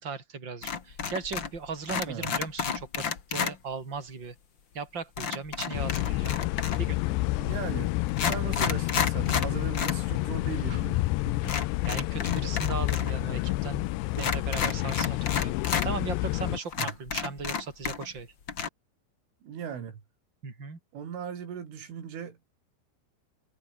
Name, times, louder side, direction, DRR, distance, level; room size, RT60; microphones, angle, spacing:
voice 1, 0.0-4.4 4.7-6.4 6.8-7.0 10.7-10.8 11.2-11.5 11.8-13.9 14.1-15.6 15.8-18.3 20.4-20.8, right 5 dB, 25° right, 5.2 m, -37 dB
sound 1, 0.6-1.6 1.8-3.5 5.2-6.9 7.6-7.7 8.1-10.0 10.3-10.4 11.4-13.1 13.4-13.5 14.1-15.9 16.3-16.4 16.7-18.2 18.5-18.7, left 6 dB, 65° left, 1.1 m, -31 dB
sound 2, 5.7-16.6, left 19 dB, 80° left, 2.6 m, -29 dB
voice 2, 7.4-7.9 8.2-11.1 16.8-16.9 19.4-20.0 20.9-22.4, right 8 dB, 75° right, 6.7 m, -38 dB
omnidirectional pair, 5.7 m